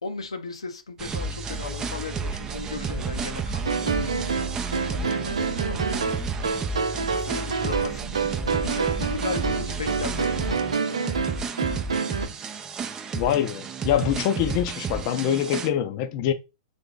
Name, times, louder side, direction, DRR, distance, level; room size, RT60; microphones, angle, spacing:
voice 1, 0.0-6.5 7.1-11.2, left 4 dB, 90° left, 0.7 m, -37 dB
sound 1, 1.0-15.7, right 4 dB, 20° right, 0.5 m, -31 dB
sound 2, 3.6-12.3, right 5 dB, 85° right, 0.5 m, -28 dB
voice 2, 13.1-16.3, left 10 dB, 45° left, 0.5 m, -24 dB
3.5 x 2.9 x 3.9 m
hypercardioid pair, 120°, 3 cm